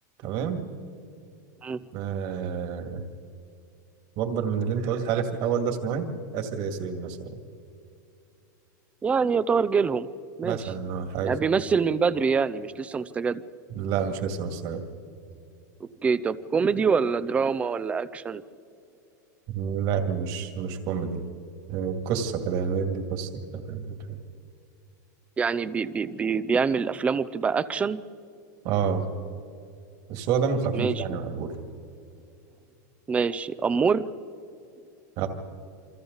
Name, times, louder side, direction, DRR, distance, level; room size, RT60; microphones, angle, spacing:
voice 1, 0.2-0.7 1.9-3.0 4.2-7.4 10.4-11.3 13.7-14.9 19.5-21.2 21.7-24.0 28.6-29.1 30.1-31.5 35.2-35.3, right 6 dB, 45° right, 6 dB, 2.3 m, -28 dB
voice 2, 9.0-10.1 10.4-10.7 11.2-13.4 16.0-18.4 25.4-28.0 30.7-30.9 33.1-34.1, right 5 dB, 15° right, 16 dB, 0.5 m, -25 dB
28.0 x 25.0 x 4.0 m, 2.5 s
supercardioid pair, 155°, 10 cm